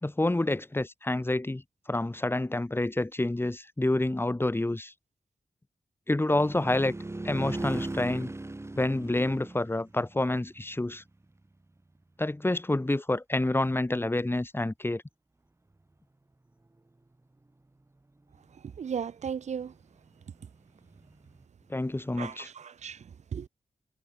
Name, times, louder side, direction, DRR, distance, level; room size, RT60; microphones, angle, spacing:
voice 1, 0.0-1.6 1.9-4.9 6.1-6.9 7.2-8.3 8.8-11.0 12.2-15.0 21.7-22.5, left 2 dB, 20° left, 5.4 m, -28 dB
sound 1, 6.3-11.2 20.8-21.4, right 2 dB, 25° right, 6.7 m, -38 dB
voice 2, 18.8-19.7 22.2-23.0 23.3-23.5, right 7 dB, 90° right, 4.4 m, -35 dB
cardioid pair, 75°, 11 cm